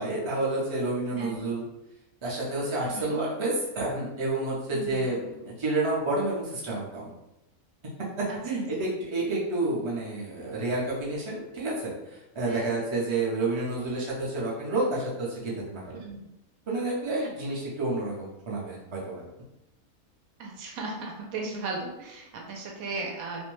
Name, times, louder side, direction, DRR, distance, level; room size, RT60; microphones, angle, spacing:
voice 1, 0.0-1.6 2.2-7.1 8.2-16.0 16.7-19.2, right 2 dB, 40° right, -5 dB, 0.4 m, -29 dB
voice 2, 2.9-3.2 4.7-5.0 8.3-8.4 12.5-12.7 16.0-16.2 20.4-23.5, right 3 dB, 75° right, 0 dB, 1.0 m, -36 dB
2.5 x 2.1 x 3.1 m, 0.90 s
omnidirectional pair, 1.6 m